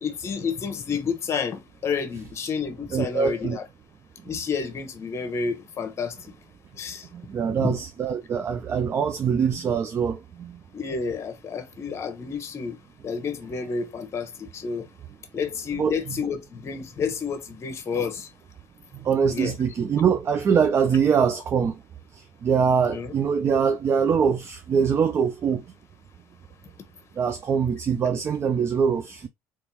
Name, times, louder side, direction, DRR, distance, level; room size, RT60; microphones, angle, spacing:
voice 1, 0.0-3.6 4.2-6.3 6.8-7.1 7.5-7.8 10.7-12.8 13.0-14.9 15.3-18.3 19.3-19.6 22.9-23.1, left 5 dB, 45° left, 1.1 m, -30 dB
voice 2, 2.9-3.6 7.1-10.6 15.8-16.1 18.9-21.8 22.1-25.6 27.2-29.3, right 6 dB, 40° right, 0.5 m, -23 dB
3.5 x 3.0 x 2.9 m
cardioid pair, 100°, 7 cm